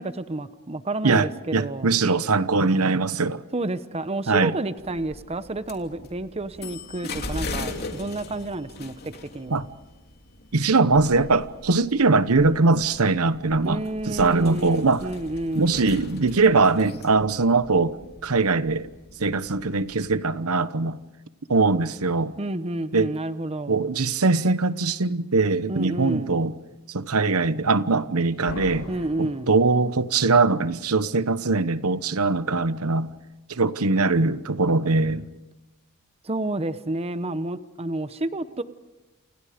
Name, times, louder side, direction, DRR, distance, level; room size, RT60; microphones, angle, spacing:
voice 1, 0.0-1.9 3.5-9.6 13.6-15.8 22.4-23.8 25.7-26.4 28.9-29.5 36.2-38.6, right 2 dB, 30° right, 0.9 m, -30 dB
voice 2, 1.5-3.4 4.3-4.5 9.5-9.7 10.5-15.1 15.6-18.0 18.2-18.9 19.2-21.0 21.5-22.3 22.9-23.1 23.7-26.5 26.9-28.9 29.2-33.1 33.5-35.3, right 3 dB, 80° right, 1.0 m, -21 dB
sound 1, 4.8-20.2, left 2 dB, 45° left, 3.1 m, -40 dB
Slam, 28.5-30.4, left 1 dB, 80° left, 2.9 m, -39 dB
29.0 x 28.5 x 5.1 m
head